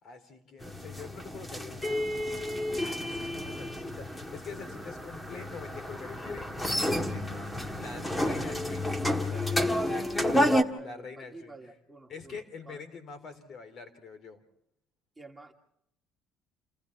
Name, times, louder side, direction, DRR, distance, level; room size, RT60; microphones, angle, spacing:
voice 1, 0.0-2.1 2.8-11.7 12.1-14.4, left 4 dB, 50° left, 9 dB, 3.6 m, -46 dB
sound 1, 0.6-10.6, left 1 dB, 10° left, 1.8 m, -30 dB
voice 2, 9.9-12.8 15.2-15.5, right 2 dB, 10° right, 1 dB, 2.5 m, -50 dB
29.5 x 27.5 x 3.6 m, 0.73 s
cardioid pair, 100°, 0 cm